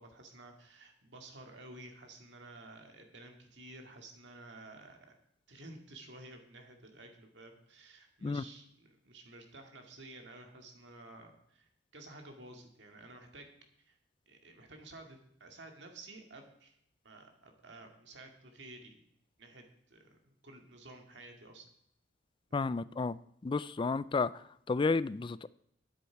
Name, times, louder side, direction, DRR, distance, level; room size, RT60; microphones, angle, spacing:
voice 1, 0.0-5.1 5.5-13.5 13.8-14.0 14.3-16.7 17.0-19.0 19.4-21.6 22.5-22.7, right 2 dB, 70° right, 4 dB, 2.2 m, -52 dB
voice 2, 22.5-25.5, left 4 dB, 25° left, 18 dB, 0.3 m, -32 dB
12.5 x 10.0 x 4.6 m, 0.70 s
head